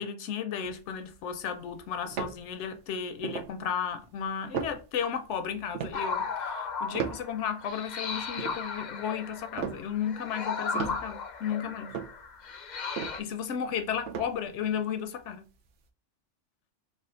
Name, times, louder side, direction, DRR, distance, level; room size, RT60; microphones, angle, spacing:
voice 1, 0.0-12.0 13.2-15.4, left 8 dB, 80° left, 0.9 m, -34 dB
sound 1, 0.6-2.9 3.2-3.5 4.0-4.1 4.3-7.7 8.1-10.4 10.7-14.7 15.2-15.3, right 7 dB, 80° right, 0.9 m, -38 dB
sound 2, 5.9-13.2, left 5 dB, 55° left, 0.5 m, -36 dB
3.3 x 2.4 x 3.7 m
omnidirectional pair, 1.2 m